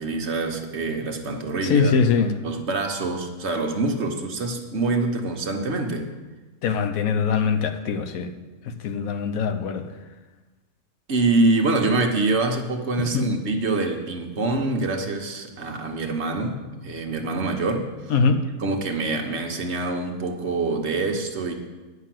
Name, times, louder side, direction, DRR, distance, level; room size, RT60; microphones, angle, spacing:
voice 1, 0.0-1.9 2.4-6.1 11.1-16.6 16.8-17.9 18.6-21.5, right 3 dB, 55° right, 3 dB, 1.3 m, -25 dB
voice 2, 1.6-2.4 6.6-8.3 8.7-9.8 13.0-13.3 18.1-18.5, left 5 dB, 80° left, 8 dB, 1.2 m, -22 dB
9.5 x 5.8 x 7.6 m, 1.2 s
omnidirectional pair, 1.5 m